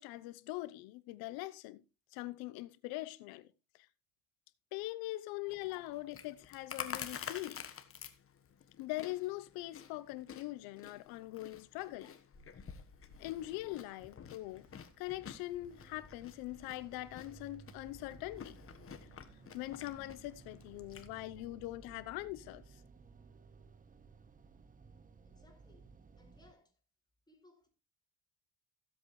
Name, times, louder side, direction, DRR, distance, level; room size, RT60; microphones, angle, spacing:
voice 1, 0.0-1.8 2.1-3.5 4.7-7.6 8.8-12.1 13.2-14.6 15.0-18.6 19.5-22.8, left 17 dB, 80° left, 0.9 m, -42 dB
Chewing mastication, 5.5-21.1, left 7 dB, 40° left, 1.4 m, -50 dB
sound 1, 13.6-26.5, right 5 dB, 25° right, 0.8 m, -58 dB
voice 2, 25.2-26.8 27.3-27.7, left 2 dB, 10° left, 4.7 m, -66 dB
15.0 x 8.2 x 3.2 m
supercardioid pair, 85°, 35 cm